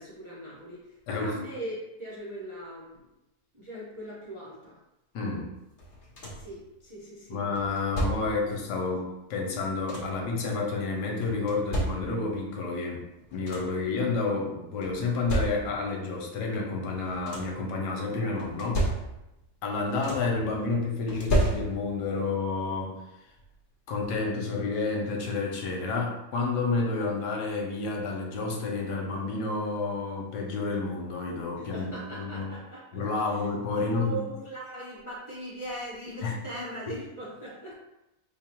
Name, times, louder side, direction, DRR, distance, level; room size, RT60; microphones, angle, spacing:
voice 1, 0.0-3.1 3.5-4.8 6.3-7.5 8.2-8.4 31.6-33.0 33.3-33.5 33.8-37.7, right 1 dB, 35° right, -7 dB, 0.5 m, -40 dB
voice 2, 5.1-5.5 7.3-13.0 13.3-18.8 19.6-23.0 23.9-31.9 32.2-32.5 32.9-34.2 36.2-36.3, left 3 dB, 90° left, 0 dB, 1.4 m, -30 dB
sound 1, 5.8-6.6 7.5-8.5 9.4-10.3 11.2-12.4 13.0-13.1 13.3-13.9 14.8-16.0 16.9-17.7 18.4-19.4 19.7-20.4 21.1-22.1 23.4-23.5 24.0-24.2, right 1 dB, 45° left, 0.7 m, -32 dB
3.8 x 2.0 x 4.3 m, 0.91 s
omnidirectional pair, 1.7 m